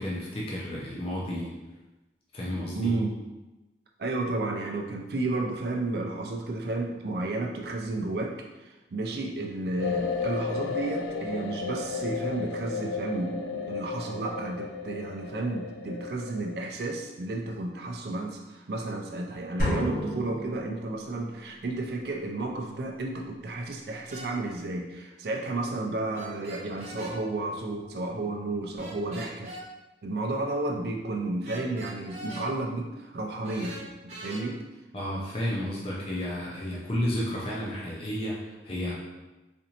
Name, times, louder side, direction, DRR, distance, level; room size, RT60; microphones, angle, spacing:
voice 1, 0.0-1.5 2.3-2.9 34.9-38.9, left 1 dB, 30° left, -5 dB, 0.5 m, -32 dB
voice 2, 2.7-3.1 4.0-29.5 30.0-34.6, right 2 dB, 60° right, 1 dB, 0.4 m, -32 dB
sound 1, 9.8-16.7, left 5 dB, 90° left, 0.4 m, -34 dB
sound 2, 19.6-21.3, equal, 50° left, 1.2 m, -30 dB
sound 3, 24.1-24.3 26.1-27.1 28.8-29.6 31.4-32.5 33.4-34.4, right 1 dB, 35° right, 0.9 m, -42 dB
4.2 x 2.6 x 2.8 m, 1.1 s
head